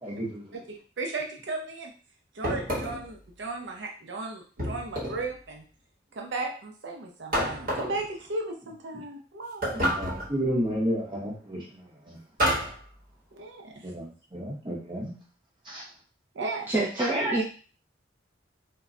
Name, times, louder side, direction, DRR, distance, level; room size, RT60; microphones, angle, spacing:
voice 1, 0.0-0.6 9.7-12.2 13.8-15.1 15.7-15.8 17.0-17.4, equal, 25° right, -5 dB, 0.9 m, -32 dB
voice 2, 0.5-1.9 2.3-5.6 6.1-9.6 13.4-13.8 16.3-16.7, right 3 dB, 70° right, 1 dB, 0.5 m, -35 dB
sound 1, 2.4-3.1 4.6-5.3 7.3-8.0 9.6-10.3 12.4-12.8, equal, 45° right, 1.0 m, -28 dB
voice 3, 16.7-17.4, right 2 dB, 10° right, -6 dB, 0.4 m, -27 dB
2.2 x 2.1 x 3.6 m, 0.39 s
head